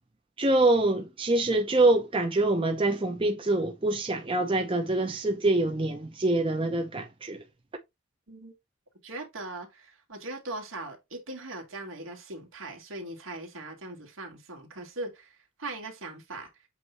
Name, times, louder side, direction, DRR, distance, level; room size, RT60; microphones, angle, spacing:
voice 1, 0.4-7.4, right 2 dB, 25° right, 0.7 m, -25 dB
voice 2, 9.0-15.3 15.6-16.5, right 2 dB, 70° right, 2.1 m, -40 dB
8.2 x 2.7 x 4.5 m
head